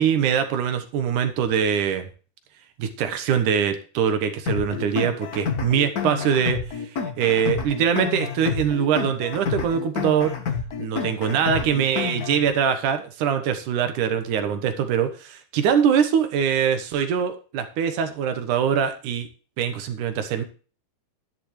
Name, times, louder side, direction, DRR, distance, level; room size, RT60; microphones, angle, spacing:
voice 1, 0.0-2.1 2.8-6.6 7.2-10.3 10.8-19.3 19.6-20.4, right 8 dB, 75° right, 8 dB, 2.7 m, -23 dB
sound 1, 4.5-12.5, left 6 dB, 70° left, 0.8 m, -29 dB
11.0 x 10.5 x 3.2 m, 0.37 s
omnidirectional pair, 3.7 m